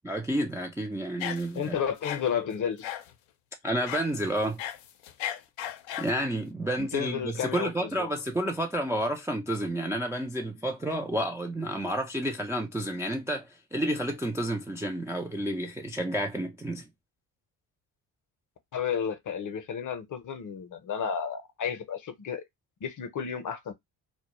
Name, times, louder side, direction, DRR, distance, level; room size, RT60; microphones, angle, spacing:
voice 1, 0.0-1.8 3.6-4.6 6.0-16.9, right 1 dB, 5° right, 0.3 m, -30 dB
sound 1, 1.2-1.7 2.0-2.2 2.8-3.1 3.9-4.1 4.4-6.2, left 11 dB, 80° left, 0.6 m, -35 dB
voice 2, 1.5-2.9 6.8-8.1 18.7-22.4 22.8-23.7, left 7 dB, 40° left, 0.7 m, -32 dB
2.2 x 2.1 x 2.9 m
supercardioid pair, 60°, 46 cm